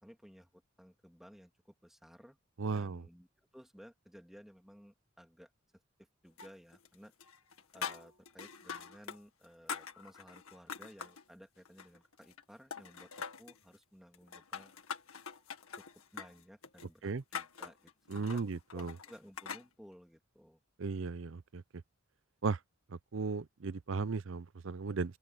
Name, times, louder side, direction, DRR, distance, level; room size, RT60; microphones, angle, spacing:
voice 1, 0.0-2.4 2.7-5.5 6.0-7.1 7.7-14.8 15.7-18.4 18.7-20.6, equal, ahead, 2.4 m, -57 dB
voice 2, 2.6-3.0 17.0-17.2 18.1-18.9 20.8-21.6 22.4-22.6 22.9-25.2, right 4 dB, 65° right, 0.6 m, -36 dB
sound 1, 6.4-6.9 7.2-9.2 9.4-11.2 11.6-12.4 12.7-13.6 14.1-19.7, left 6 dB, 90° left, 1.9 m, -44 dB
open air
head